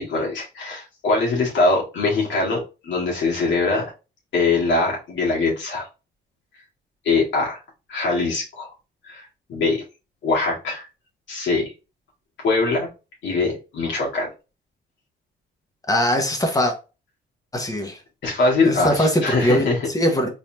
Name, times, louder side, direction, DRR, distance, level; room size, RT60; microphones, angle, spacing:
voice 1, 0.0-3.9 4.3-5.9 7.1-7.6 7.9-8.7 9.0-9.2 9.5-9.8 10.2-10.8 11.3-11.7 12.4-12.9 13.2-14.3 18.2-19.8, left 3 dB, 70° left, 1.7 m, -22 dB
voice 2, 15.9-16.7 17.5-18.0 18.6-20.3, equal, 15° left, 1.3 m, -21 dB
4.1 x 3.3 x 2.7 m
cardioid pair, 90°, 20 cm